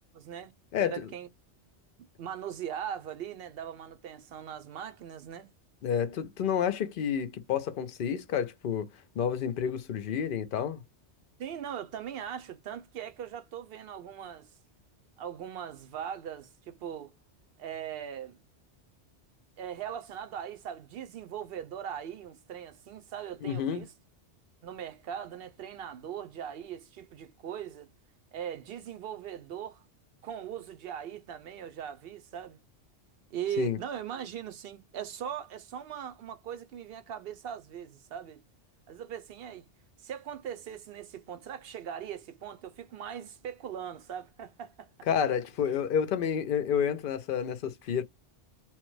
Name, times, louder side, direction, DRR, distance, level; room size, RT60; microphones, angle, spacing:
voice 1, 0.1-0.5 0.8-1.3 2.2-5.5 11.4-14.5 15.2-17.1 17.6-18.4 19.6-23.9 24.6-27.9 28.3-29.8 30.2-32.6 33.3-38.4 38.9-39.7 40.0-44.9, right 9 dB, 60° right, 0.7 m, -40 dB
voice 2, 0.7-1.1 5.8-8.9 9.2-10.8 23.4-23.8 33.6-33.8 45.1-48.0, left 8 dB, 55° left, 0.6 m, -29 dB
3.1 x 2.1 x 3.1 m
omnidirectional pair, 1.2 m